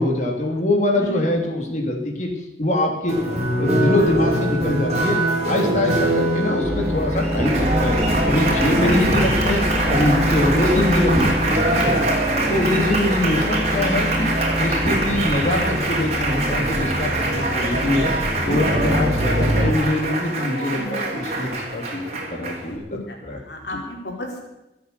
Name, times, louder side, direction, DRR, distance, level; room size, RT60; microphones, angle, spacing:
voice 1, 0.0-2.3 2.6-8.0 8.2-9.6 9.9-11.9 12.5-14.3 14.6-18.1 18.4-22.0 22.3-22.8 23.2-23.4 23.7-23.8, left 1 dB, 40° left, 1 dB, 2.8 m, -23 dB
voice 2, 0.9-1.3 8.5-8.7 10.5-10.6 20.7-20.9 22.9-23.0 23.4-24.4, left 1 dB, 65° left, 0 dB, 4.6 m, -33 dB
Applause, 3.1-22.8, right 2 dB, 35° right, 3.5 m, -24 dB
sound 1, 6.6-19.7, equal, 15° right, 2.1 m, -24 dB
24.5 x 8.3 x 6.8 m, 0.94 s
head